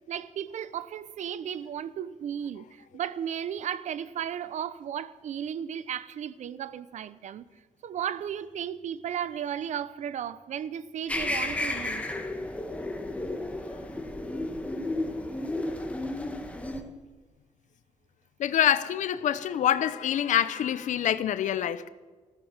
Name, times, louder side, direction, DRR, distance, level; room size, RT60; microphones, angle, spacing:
voice 1, 0.1-2.7 2.9-7.4 7.8-12.1, right 9 dB, 70° right, 0.7 m, -34 dB
sound 1, 11.1-16.8, left 2 dB, 10° left, 1.6 m, -32 dB
voice 2, 18.4-21.9, left 10 dB, 80° left, 0.7 m, -26 dB
14.5 x 13.5 x 6.6 m
cardioid pair, 130°, 13 cm